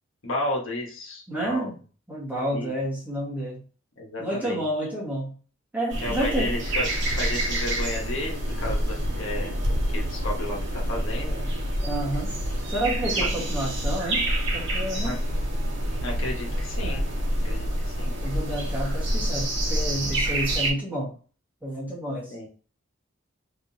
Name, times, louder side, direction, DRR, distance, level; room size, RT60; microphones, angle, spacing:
voice 1, 0.2-1.7 2.5-2.7 4.0-4.6 6.0-6.9 7.1-9.5 9.9-11.5 13.2-13.3 15.0-15.1 16.0-17.1 17.4-18.1 22.3-22.5, left 1 dB, 80° left, -2 dB, 1.3 m, -32 dB
voice 2, 1.3-1.7 2.1-3.6 4.2-5.4 5.7-6.5 11.8-12.3 12.7-14.2 14.5-15.1 18.2-21.1 21.6-22.3, right 1 dB, 10° right, -5 dB, 1.5 m, -30 dB
sound 1, 5.9-20.7, right 1 dB, 60° right, 1.1 m, -27 dB
3.6 x 3.2 x 2.8 m, 0.38 s
head